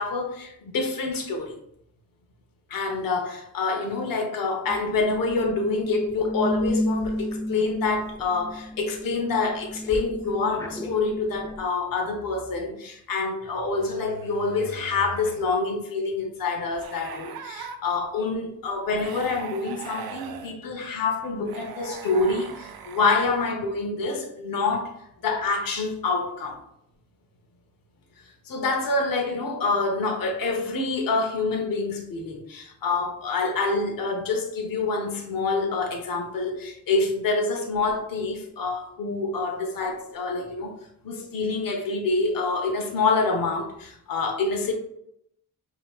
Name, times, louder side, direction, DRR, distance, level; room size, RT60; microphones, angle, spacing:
voice 1, 0.0-1.5 2.7-24.9 25.2-26.6 28.4-40.7 41.0-44.7, left 3 dB, 70° left, 2 dB, 0.8 m, -27 dB
sound 1, 4.7-11.6, left 1 dB, 10° left, 0.5 m, -32 dB
sound 2, 12.1-12.7 13.6-15.6 16.7-17.8 19.0-20.6 21.5-23.5, right 6 dB, 90° right, 0.5 m, -40 dB
5.3 x 2.8 x 2.4 m, 0.74 s
cardioid pair, 95°, 35 cm